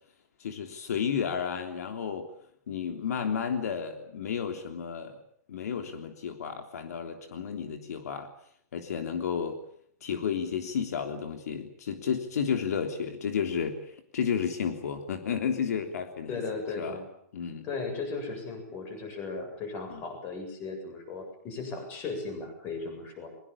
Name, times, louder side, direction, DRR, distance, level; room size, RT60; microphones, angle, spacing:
voice 1, 0.4-2.3 2.7-5.1 5.5-8.3 8.7-9.6 10.0-13.8 14.1-16.4 16.8-17.0 17.3-17.7, left 7 dB, 75° left, 6 dB, 3.4 m, -32 dB
voice 2, 16.3-17.1 17.6-23.3, left 4 dB, 25° left, 6 dB, 7.9 m, -36 dB
23.0 x 22.5 x 8.6 m, 0.64 s
hypercardioid pair, 170°, 9 cm